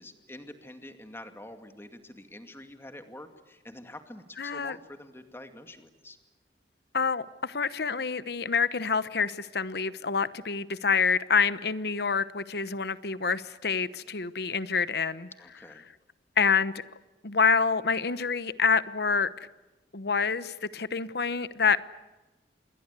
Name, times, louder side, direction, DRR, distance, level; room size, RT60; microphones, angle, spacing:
voice 1, 0.0-6.2 15.4-15.8, left 1 dB, 15° left, 7 dB, 2.3 m, -46 dB
voice 2, 4.4-4.8 6.9-15.3 16.4-16.7 17.2-19.3 19.9-21.8, left 5 dB, 60° left, 15 dB, 1.0 m, -27 dB
28.0 x 21.5 x 8.3 m, 1.1 s
head